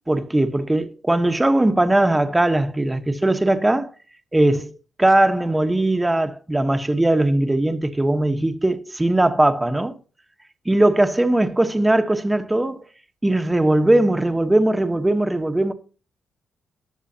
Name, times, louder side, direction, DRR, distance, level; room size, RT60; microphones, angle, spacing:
voice 1, 0.1-3.9 4.3-4.7 5.0-10.0 10.6-12.8 13.2-15.7, right 1 dB, 15° right, 1.1 m, -19 dB
19.0 x 6.7 x 2.8 m
cardioid pair, 80°, 0 cm